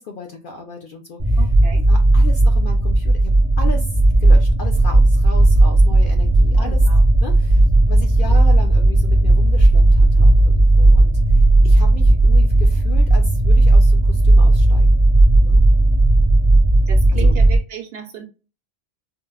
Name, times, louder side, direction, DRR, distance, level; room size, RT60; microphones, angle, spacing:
voice 1, 0.1-1.4 1.9-6.8 7.2-11.1 11.6-15.0 15.4-15.6 17.1-17.3, left 3 dB, 60° left, 0.6 m, -35 dB
sound 1, 1.2-17.6, right 2 dB, 45° right, 0.3 m, -13 dB
voice 2, 1.4-1.9 6.6-7.0 8.3-8.4 16.9-18.2, right 8 dB, 60° right, 0.7 m, -34 dB
4.4 x 2.0 x 2.3 m
omnidirectional pair, 1.3 m